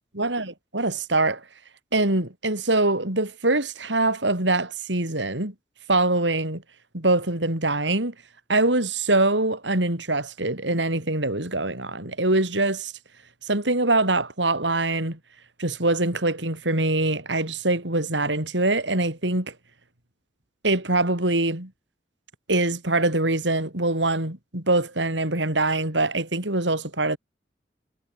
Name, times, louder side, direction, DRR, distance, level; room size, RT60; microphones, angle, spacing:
voice 1, 0.1-1.4 1.9-5.5 5.9-6.6 6.9-8.1 8.5-12.9 13.5-15.2 15.6-19.5 20.6-21.7 22.5-27.2, right 2 dB, 85° right, 5.0 m, -23 dB
head